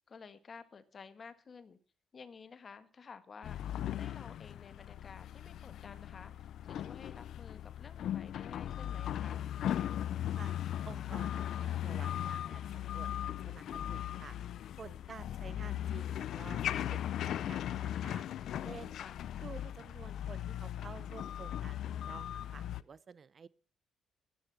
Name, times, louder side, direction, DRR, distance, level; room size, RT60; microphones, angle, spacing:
voice 1, 0.0-1.8 2.1-6.3 6.6-9.6 15.3-15.5 19.0-19.2, left 5 dB, 45° left, 12 dB, 1.5 m, -53 dB
sound 1, 3.4-22.8, left 11 dB, 75° left, 0.6 m, -38 dB
voice 2, 9.9-10.6 10.9-13.1 13.5-14.4 14.8-17.0 17.5-18.3 18.6-19.0 19.4-23.5, right 6 dB, 45° right, 19 dB, 0.6 m, -51 dB
15.0 x 10.5 x 5.9 m, 0.42 s
cardioid pair, 90°, 0 cm